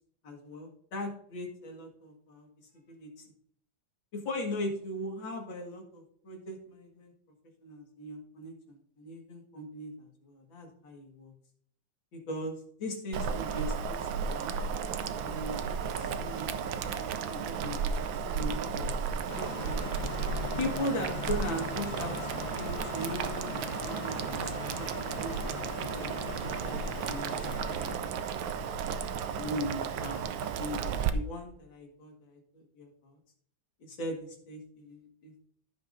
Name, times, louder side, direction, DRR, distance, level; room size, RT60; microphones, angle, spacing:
voice 1, 0.2-2.5 2.9-3.3 4.1-7.1 7.6-11.3 12.1-14.0 14.3-14.6 15.1-19.0 19.3-19.7 20.6-25.6 25.9-28.2 29.3-33.2 33.8-35.5, left 1 dB, 85° left, 1 dB, 2.7 m, -39 dB
Boiling, 13.1-31.1, right 6 dB, 90° right, 1.4 m, -34 dB
sound 1, 19.3-28.0, left 7 dB, 70° left, 1.1 m, -41 dB
15.5 x 6.1 x 2.6 m, 0.66 s
omnidirectional pair, 2.0 m